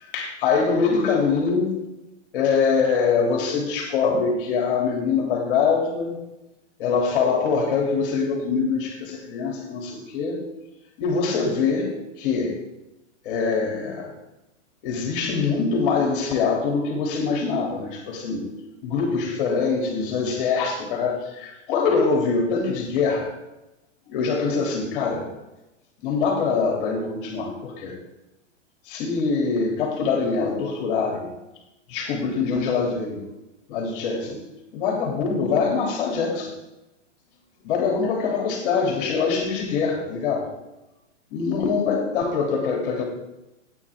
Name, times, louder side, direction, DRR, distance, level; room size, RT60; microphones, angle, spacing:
voice 1, 0.1-1.7 2.3-6.2 6.8-10.4 11.0-11.9 12.2-12.6 13.2-14.1 14.8-18.5 18.8-23.3 24.1-25.3 26.0-27.9 28.9-31.3 31.9-33.2 33.7-34.4 34.7-36.5 37.6-40.5 41.3-43.0, left 5 dB, 45° left, 0 dB, 3.1 m, -23 dB
17.0 x 9.1 x 3.7 m, 0.97 s
hypercardioid pair, 155°, 37 cm